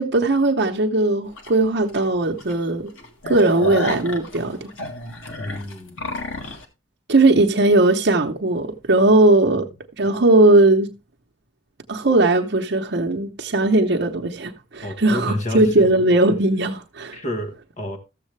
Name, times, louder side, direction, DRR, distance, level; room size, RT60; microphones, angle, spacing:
voice 1, 0.0-2.9 3.3-4.7 7.1-9.7 10.0-10.9 11.9-17.2, right 2 dB, 55° right, 0.8 m, -18 dB
sound 1, 1.4-1.5 2.0-2.1 2.4-2.5 2.9-6.6, left 1 dB, 90° left, 2.0 m, -30 dB
voice 2, 5.4-6.0 9.6-9.7 14.8-15.9 17.1-18.0, left 1 dB, 40° left, 1.3 m, -30 dB
13.5 x 7.4 x 3.2 m
head